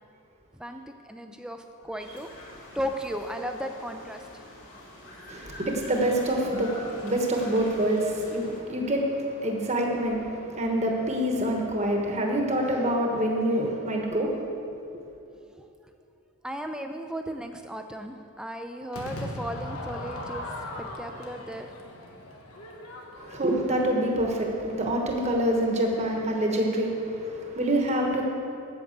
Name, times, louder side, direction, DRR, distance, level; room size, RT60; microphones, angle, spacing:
voice 1, 0.5-2.3 2.7-4.4 15.3-15.7 16.4-20.5 20.8-21.8, equal, 5° right, 5 dB, 0.4 m, -36 dB
sound 1, 2.0-8.6, left 1 dB, 55° left, 2.9 m, -45 dB
voice 2, 5.3-14.3 23.2-28.2, right 1 dB, 30° right, 1 dB, 1.2 m, -26 dB
Crowd / Fireworks, 18.9-24.2, left 1 dB, 90° left, 1.4 m, -39 dB
8.8 x 7.3 x 7.9 m, 2.6 s
head